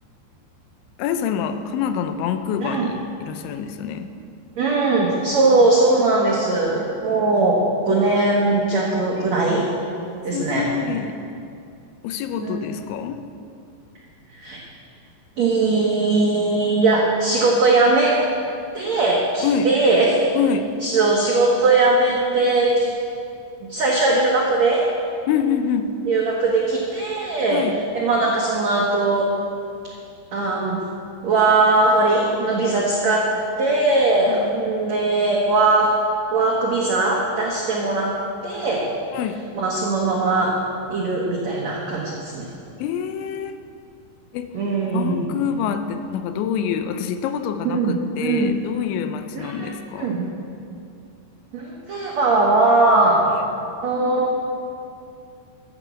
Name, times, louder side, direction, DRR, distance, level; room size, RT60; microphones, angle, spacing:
voice 1, 1.0-4.1 9.2-9.5 10.3-11.2 12.0-13.2 19.4-19.7 20.3-20.7 25.3-26.0 27.5-27.8 34.3-34.5 39.1-39.4 42.8-43.6 44.3-44.6 44.9-50.2 53.3-53.5, left 7 dB, 85° left, 9 dB, 3.0 m, -26 dB
voice 2, 4.6-9.7 10.2-10.7 12.4-12.7 14.4-14.6 15.4-18.2 18.7-20.3 20.8-22.9 23.7-24.8 26.1-27.6 27.9-29.3 30.3-30.8 31.2-33.3 33.6-35.9 36.3-38.1 38.4-38.9 39.6-40.5 40.9-42.5 44.5-45.2 47.6-48.5 49.3-49.7 50.0-50.3 51.5-53.4 53.8-54.4, right 3 dB, 85° right, -3 dB, 1.5 m, -20 dB
14.0 x 8.9 x 7.1 m, 2.5 s
omnidirectional pair, 5.4 m